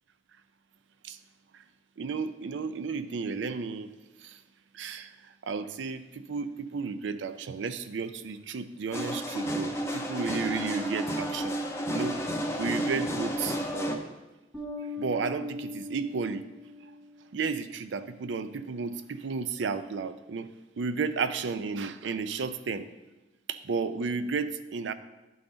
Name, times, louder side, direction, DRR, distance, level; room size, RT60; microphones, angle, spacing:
voice 1, 2.0-3.9 4.2-4.3 4.8-5.1 5.4-11.6 11.9-12.2 12.6-14.1 15.0-16.5 17.3-20.5 20.8-22.9 23.5-24.9, right 5 dB, 90° right, 12 dB, 0.5 m, -33 dB
sound 1, 8.9-14.0, equal, 15° left, 0.6 m, -31 dB
Bass guitar, 14.5-17.2, left 3 dB, 10° right, 1.2 m, -40 dB
11.0 x 3.9 x 3.9 m, 1.1 s
head